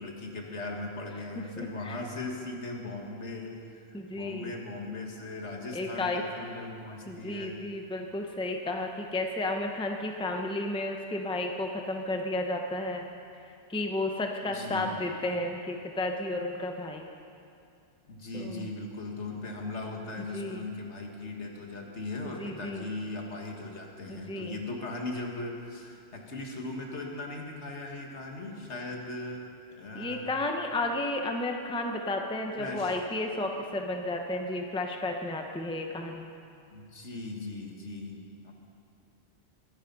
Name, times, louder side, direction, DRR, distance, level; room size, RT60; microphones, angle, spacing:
voice 1, 0.0-7.6 14.4-15.1 18.1-29.5 29.7-30.3 32.6-33.0 36.7-38.5, left 2 dB, 65° left, 1 dB, 2.0 m, -38 dB
voice 2, 1.4-2.0 3.9-4.5 5.7-6.2 7.1-13.1 13.7-17.1 18.3-18.7 20.3-20.6 22.2-22.9 24.1-24.6 29.9-36.3, left 2 dB, 5° left, 3 dB, 0.9 m, -32 dB
23.0 x 10.5 x 5.4 m, 2.5 s
omnidirectional pair, 1.3 m